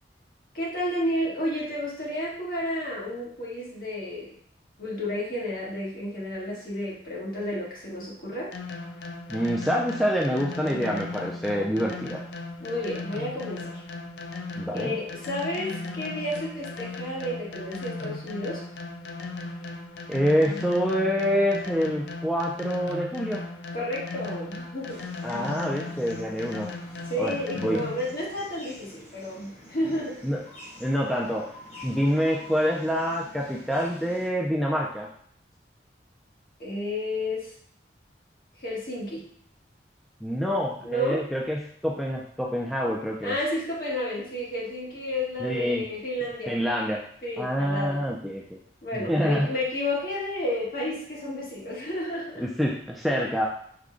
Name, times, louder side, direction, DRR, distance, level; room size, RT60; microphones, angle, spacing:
voice 1, 0.5-4.4 4.8-8.5 12.6-13.8 14.7-18.6 23.7-25.0 27.1-30.2 36.6-37.5 38.6-39.3 40.8-41.2 43.2-46.6 47.2-48.0 48.8-52.5 53.1-53.3, left 1 dB, 50° left, -5 dB, 1.3 m, -31 dB
sound 1, 8.5-28.2, left 3 dB, 75° left, 0.4 m, -37 dB
voice 2, 9.3-12.2 14.6-15.0 20.1-23.4 25.2-26.7 27.2-27.8 30.2-30.4 30.8-31.5 31.8-35.1 40.2-43.4 45.4-45.8 46.5-47.0 47.4-48.6 48.9-49.5 52.4-53.5, equal, ahead, -3 dB, 0.3 m, -26 dB
sound 2, 24.9-34.3, left 1 dB, 35° left, 0.9 m, -48 dB
4.8 x 2.2 x 3.7 m, 0.62 s
head